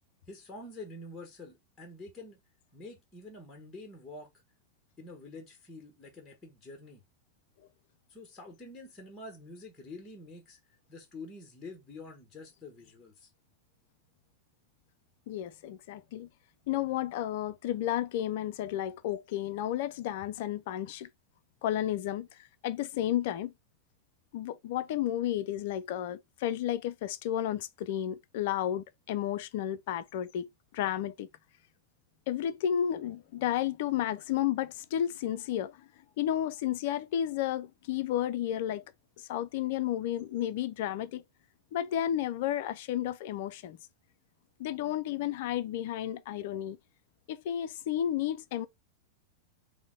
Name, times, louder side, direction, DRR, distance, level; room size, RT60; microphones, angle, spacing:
voice 1, 0.3-2.4 2.7-4.3 5.0-7.0 8.1-10.6 10.9-13.3, left 2 dB, 20° left, 1.1 m, -47 dB
voice 2, 15.3-16.3 16.7-21.1 21.6-23.5 24.3-31.3 32.3-35.9 36.2-38.8 39.2-41.2 41.7-43.8 44.6-46.8 47.3-48.7, left 11 dB, 50° left, 0.3 m, -32 dB
3.9 x 2.1 x 3.6 m
figure-of-eight pair, 90°, 0 cm